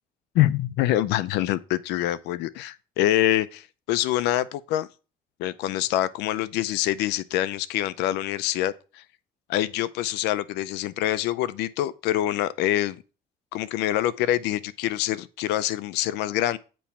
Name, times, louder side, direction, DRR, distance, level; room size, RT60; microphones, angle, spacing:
voice 1, 0.3-4.9 5.4-9.0 9.5-13.0 13.5-16.6, left 13 dB, 90° left, 0.5 m, -25 dB
8.5 x 3.1 x 5.6 m
cardioid pair, 110°, 17 cm